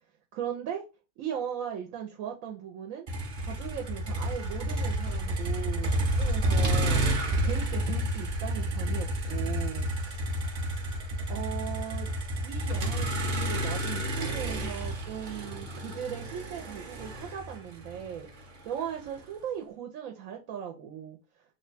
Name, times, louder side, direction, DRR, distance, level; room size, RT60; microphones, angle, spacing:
voice 1, 0.3-0.8 1.2-3.1 3.4-7.0 7.4-10.3 11.3-12.1 12.4-18.3 18.7-21.2, right 9 dB, 80° right, 1.0 m, -38 dB
Motor vehicle (road), 3.1-19.2, right 1 dB, 45° right, 0.7 m, -30 dB
3.2 x 2.2 x 3.9 m
omnidirectional pair, 1.4 m